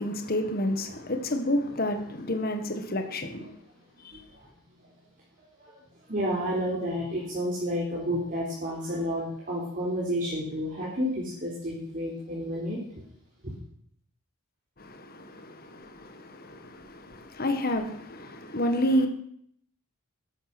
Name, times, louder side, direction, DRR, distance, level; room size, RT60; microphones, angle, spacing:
voice 1, 0.0-3.5 14.8-19.1, left 1 dB, 45° left, 1.6 m, -30 dB
voice 2, 1.6-2.1 3.4-3.5 4.1-4.5 4.8-4.9 5.6-5.8 6.1-12.8 13.4-13.5, equal, 40° right, 3.9 m, -31 dB
13.5 x 11.5 x 6.1 m
head